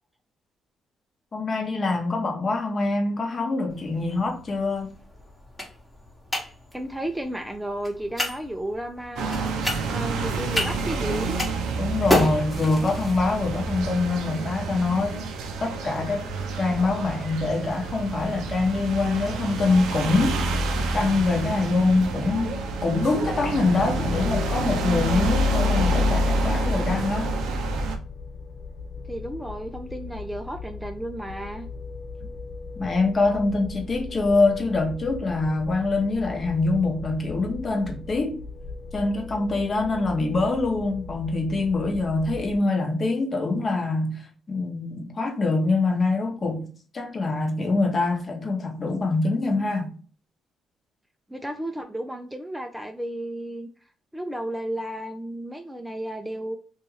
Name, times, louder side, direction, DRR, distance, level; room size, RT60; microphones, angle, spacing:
voice 1, 1.3-4.9 11.7-15.3 15.6-16.3 16.6-20.4 20.9-27.3 32.8-38.4 38.9-50.0, left 3 dB, 40° left, 0.8 m, -24 dB
sound 1, 3.7-21.6, left 1 dB, 10° left, 0.9 m, -35 dB
voice 2, 6.7-9.5 9.9-11.4 29.1-31.7 51.3-53.7 54.1-56.6, right 1 dB, 5° right, 0.3 m, -33 dB
sound 2, 9.2-28.0, right 1 dB, 85° right, 0.4 m, -28 dB
sound 3, 25.8-42.6, left 4 dB, 75° left, 0.3 m, -39 dB
2.7 x 2.3 x 3.0 m
cardioid pair, 90°, 0 cm